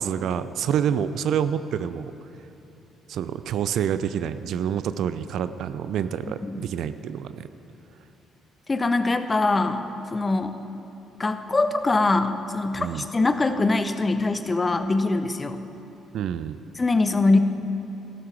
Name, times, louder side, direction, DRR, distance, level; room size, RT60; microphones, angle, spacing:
voice 1, 0.0-2.1 3.1-7.5 12.8-13.1 16.1-16.6, right 8 dB, 60° right, 13 dB, 0.4 m, -27 dB
voice 2, 8.7-9.8 10.1-10.6 11.2-15.6 16.8-17.4, left 3 dB, 25° left, 10 dB, 0.8 m, -23 dB
15.0 x 12.5 x 4.6 m, 2.9 s
figure-of-eight pair, 45°, 0 cm